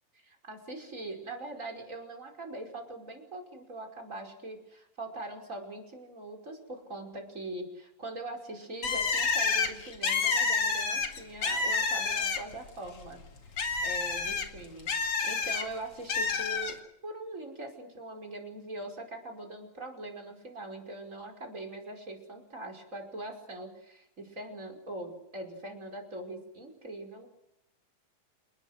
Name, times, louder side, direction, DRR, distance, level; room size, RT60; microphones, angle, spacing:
voice 1, 0.1-13.2 13.8-27.3, right 2 dB, 20° right, 2 dB, 5.5 m, -42 dB
Bird, 8.8-12.7 13.0-15.6 16.1-16.7, left 4 dB, 45° left, 2.8 m, -29 dB
29.0 x 20.5 x 6.5 m, 0.84 s
omnidirectional pair, 3.9 m